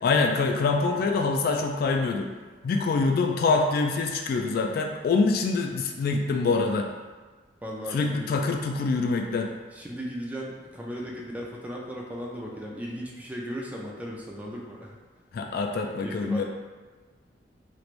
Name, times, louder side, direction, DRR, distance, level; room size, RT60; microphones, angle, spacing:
voice 1, 0.0-2.3 2.6-6.9 7.9-9.5 15.3-16.4, left 4 dB, 55° left, 3 dB, 0.3 m, -25 dB
voice 2, 7.6-8.3 9.7-15.0 16.0-16.4, equal, 10° right, -2 dB, 0.4 m, -36 dB
3.2 x 3.1 x 2.5 m, 1.4 s
head